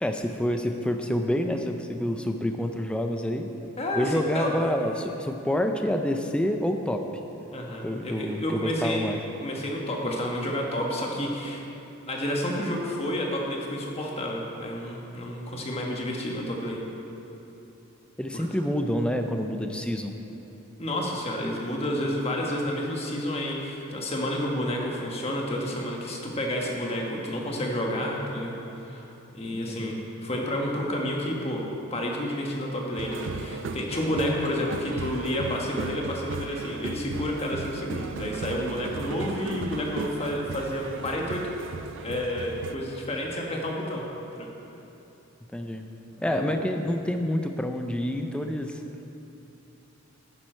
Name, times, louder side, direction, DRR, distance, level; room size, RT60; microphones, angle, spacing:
voice 1, 0.0-3.5 4.0-7.0 7.8-9.2 18.2-20.1 29.5-30.0 45.5-45.8 46.2-48.8, equal, 5° left, 5 dB, 0.4 m, -28 dB
voice 2, 3.8-4.5 7.5-9.1 9.4-11.7 12.1-16.8 18.3-18.4 20.8-28.6 28.8-31.6 31.9-41.4 42.0-44.0 44.3-44.5 46.2-46.7, left 1 dB, 25° left, -1 dB, 1.3 m, -30 dB
sound 1, 33.0-42.8, right 4 dB, 55° right, 0.4 m, -36 dB
11.0 x 9.9 x 4.4 m, 2.9 s
head